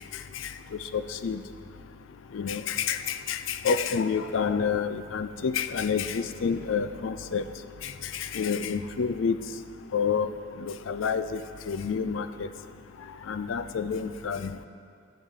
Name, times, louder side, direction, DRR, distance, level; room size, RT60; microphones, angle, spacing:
voice 1, 0.9-1.4 2.3-7.4 7.8-9.4 9.9-10.3 10.6-11.4 11.7-12.5 13.3-14.5, left 6 dB, 80° left, 11 dB, 0.4 m, -28 dB
15.0 x 8.9 x 3.7 m, 2.4 s
head